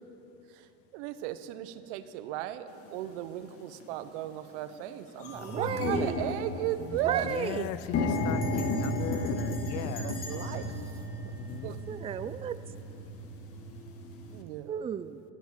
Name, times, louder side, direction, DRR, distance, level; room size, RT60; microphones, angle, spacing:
voice 1, 0.5-7.3 9.5-11.0 11.6-11.8 14.3-14.9, right 13 dB, 85° right, 12 dB, 0.9 m, -36 dB
sound 1, 2.8-2.9 3.7-3.9 4.3-4.4 4.7-14.4, left 1 dB, 40° left, 1.8 m, -34 dB
voice 2, 5.4-6.2 7.0-7.7 11.9-12.6 14.7-15.2, right 9 dB, 20° right, 14 dB, 0.4 m, -34 dB
voice 3, 7.3-10.7 11.3-11.8, left 14 dB, 55° left, 17 dB, 0.6 m, -39 dB
Bell, 8.1-12.2, left 3 dB, 25° left, 2.9 m, -49 dB
14.0 x 10.5 x 9.3 m, 2.9 s
supercardioid pair, 120°, 34 cm